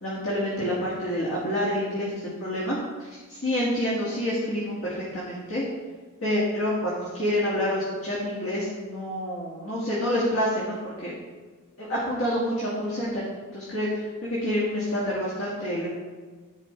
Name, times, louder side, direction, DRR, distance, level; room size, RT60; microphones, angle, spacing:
voice 1, 0.0-5.6 6.2-11.2 11.8-15.9, equal, 60° left, -7 dB, 2.2 m, -28 dB
14.0 x 5.0 x 3.4 m, 1.4 s
head